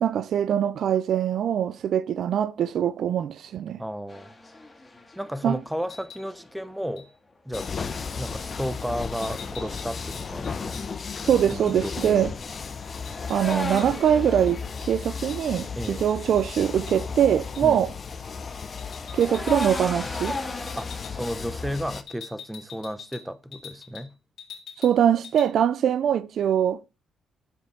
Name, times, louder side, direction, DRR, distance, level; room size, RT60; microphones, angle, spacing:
voice 1, 0.0-3.8 5.4-5.6 11.2-12.3 13.3-17.9 19.1-20.4 24.8-26.8, right 9 dB, 65° right, 0.5 m, -23 dB
voice 2, 3.8-4.3 5.2-7.1 7.4-10.8 11.5-12.3 15.7-16.1 17.6-17.8 20.7-24.1, equal, 5° right, 0.9 m, -33 dB
sound 1, 4.1-7.0 7.8-10.5 12.1-17.7 18.0-22.0, left 2 dB, 20° left, 1.9 m, -38 dB
sound 2, 5.8-6.3 7.0-7.1 7.5-7.8 9.2-12.1 12.4-12.5 12.8-14.1 14.5-16.4 16.9-17.0 17.5-17.8 18.8-19.9 20.1-20.4 20.7-21.1 22.1-24.1 24.4-25.0 25.2-25.5, left 7 dB, 70° left, 2.6 m, -46 dB
sound 3, 7.5-22.0, left 5 dB, 40° left, 1.0 m, -35 dB
10.0 x 7.3 x 4.5 m
cardioid pair, 90°, 0 cm